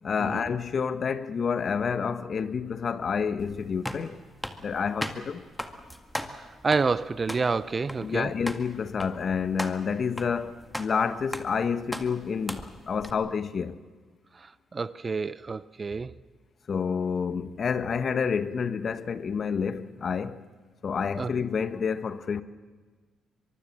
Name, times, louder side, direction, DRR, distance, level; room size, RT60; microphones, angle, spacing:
voice 1, 0.0-4.2 4.6-5.5 8.0-13.8 16.7-20.4 20.8-22.4, left 6 dB, 50° left, 1.3 m, -29 dB
sound 1, 3.4-13.1, left 1 dB, 5° left, 2.0 m, -39 dB
voice 2, 6.4-8.3 14.7-16.1 21.2-21.3, right 4 dB, 30° right, 0.7 m, -28 dB
24.0 x 23.0 x 7.5 m
cardioid pair, 90°, 0 cm